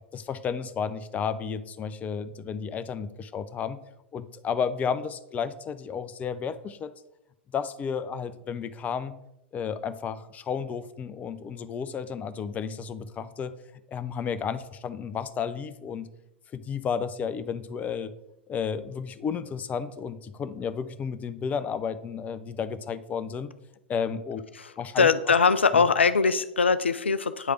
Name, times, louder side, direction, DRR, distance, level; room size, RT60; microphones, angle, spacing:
voice 1, 0.1-3.8 4.1-6.9 7.5-9.1 9.5-13.5 13.9-16.1 16.5-18.1 18.5-23.5 23.9-24.4 24.8-25.3 25.7-25.9, left 6 dB, 25° left, 13 dB, 0.5 m, -32 dB
voice 2, 25.0-27.5, left 5 dB, 85° left, 12 dB, 0.4 m, -22 dB
9.3 x 3.3 x 5.0 m, 0.86 s
figure-of-eight pair, 95°, 6 cm